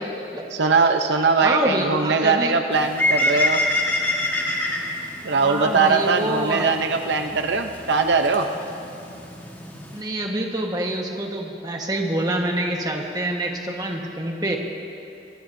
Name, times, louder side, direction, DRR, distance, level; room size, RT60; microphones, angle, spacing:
voice 1, 0.5-3.6 5.2-8.5, right 4 dB, 75° right, 5 dB, 0.7 m, -21 dB
voice 2, 1.4-2.6 5.4-6.7 9.9-14.6, right 1 dB, 20° right, 1 dB, 1.3 m, -26 dB
Bird, 2.7-10.0, left 1 dB, 10° left, 1.5 m, -27 dB
25.0 x 19.0 x 2.7 m, 2.6 s
head